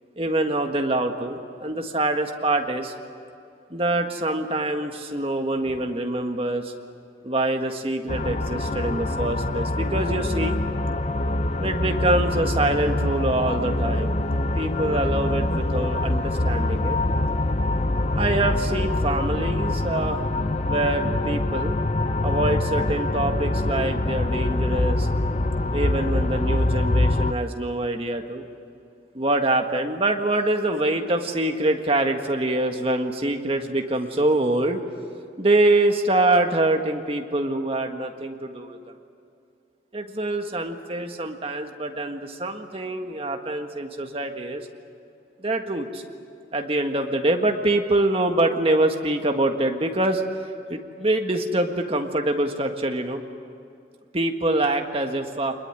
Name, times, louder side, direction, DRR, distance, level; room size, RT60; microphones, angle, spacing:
voice 1, 0.2-2.9 3.7-6.7 7.2-10.6 11.6-17.0 18.1-20.2 20.6-21.8 22.2-25.1 25.7-28.4 29.1-34.8 35.4-38.8 39.9-44.7 45.4-46.0 46.5-50.2 50.7-53.2 54.1-55.5, right 2 dB, 30° right, 4 dB, 1.7 m, -25 dB
sound 1, 8.1-27.3, left 2 dB, 30° left, 0.7 m, -24 dB
26.0 x 21.0 x 9.9 m, 2.5 s
head